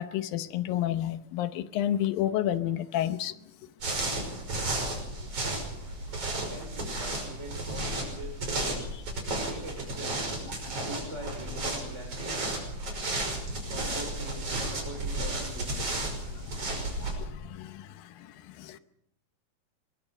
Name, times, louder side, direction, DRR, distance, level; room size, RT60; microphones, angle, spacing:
voice 1, 0.0-3.3 8.9-9.0 16.3-16.7 17.0-17.9 18.6-18.8, left 11 dB, 80° left, 11 dB, 2.7 m, -30 dB
sound 1, 3.8-17.1, right 2 dB, 40° right, 6.6 m, -33 dB
voice 2, 6.3-8.5 9.4-10.4 10.8-12.5 13.7-16.1, right 2 dB, 20° right, 2 dB, 3.3 m, -43 dB
24.0 x 22.0 x 5.4 m, 0.75 s
omnidirectional pair, 4.1 m